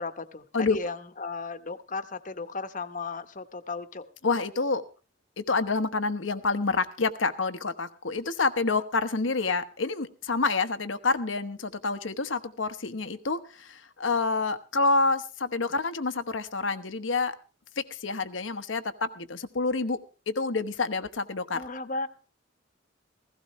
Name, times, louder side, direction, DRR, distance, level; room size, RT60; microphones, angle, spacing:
voice 1, 0.0-4.1 21.5-22.1, left 3 dB, 45° left, 10 dB, 1.1 m, -35 dB
voice 2, 4.2-4.8 5.4-17.4 17.8-20.0 20.3-21.6, left 3 dB, 90° left, 10 dB, 1.1 m, -28 dB
16.0 x 16.0 x 3.1 m, 0.35 s
head